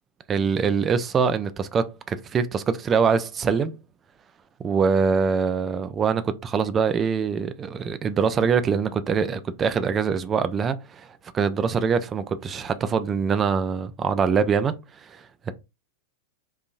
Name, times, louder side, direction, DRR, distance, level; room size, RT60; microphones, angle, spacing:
voice 1, 0.3-3.7 4.6-14.7 15.0-15.5, right 6 dB, 25° right, 0.4 m, -24 dB
3.9 x 2.7 x 2.5 m
figure-of-eight pair, 90°, 0 cm